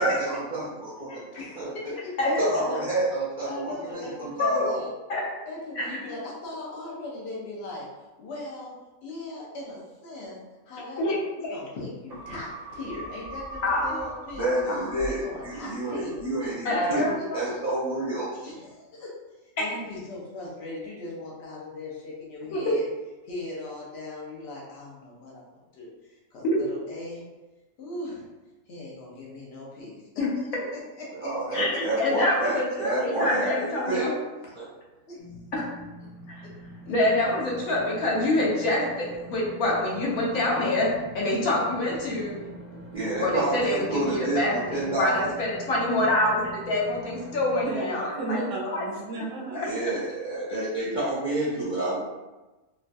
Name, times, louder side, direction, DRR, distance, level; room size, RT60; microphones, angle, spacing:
voice 1, 0.0-1.2 1.6-1.7 2.2-4.8 14.4-18.3 31.2-34.1 34.5-34.6 42.9-45.3 49.5-52.0, right 2 dB, 45° right, -10 dB, 0.7 m, -29 dB
voice 2, 1.3-2.8 3.5-4.9 5.5-7.9 8.2-8.7 9.0-10.4 10.6-14.5 15.0-16.1 16.4-16.8 17.2-17.5 18.4-22.8 23.2-27.2 27.8-28.3 28.7-31.8 35.1-35.2 35.5-35.6 36.4-36.5 36.8-36.9 37.6-37.7, left 2 dB, 55° left, -4 dB, 1.0 m, -39 dB
voice 3, 5.8-6.1 11.0-11.2 13.6-14.0 16.6-17.4 22.5-22.7 26.4-26.6 30.2-30.3 31.5-34.1 35.5-35.6 36.3-36.5 36.9-42.3 43.2-48.4 48.7-48.8, left 1 dB, 75° left, -4 dB, 1.2 m, -26 dB
sound 1, 12.1-16.8 17.2-17.3, equal, 85° right, 0.3 m, -41 dB
sound 2, 35.2-47.6, right 1 dB, 35° left, 0.6 m, -44 dB
voice 4, 47.7-49.6, right 3 dB, 65° right, -2 dB, 0.9 m, -33 dB
3.0 x 2.3 x 2.5 m, 1.1 s
omnidirectional pair, 1.5 m